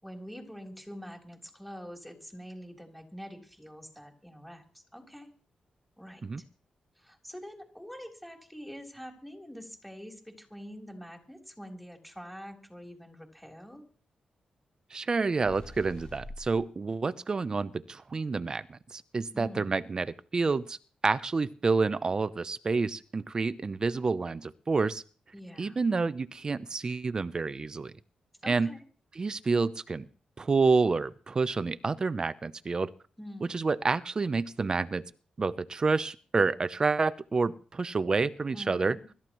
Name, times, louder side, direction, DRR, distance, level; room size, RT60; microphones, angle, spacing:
voice 1, 0.0-5.3 6.0-6.5 7.0-13.8 19.3-19.8 25.3-25.8 28.4-28.8 33.2-33.6 38.5-39.0, equal, ahead, 2 dB, 3.6 m, -45 dB
voice 2, 14.9-20.8 21.0-25.0 25.6-27.9 28.5-28.7 29.2-30.1 30.4-32.9 33.5-35.0 35.4-39.0, right 4 dB, 35° right, 15 dB, 0.6 m, -28 dB
sound 1, 15.4-16.7, left 1 dB, 45° left, 4.6 m, -45 dB
25.0 x 13.5 x 3.1 m, 0.39 s
wide cardioid pair, 115°, 2 cm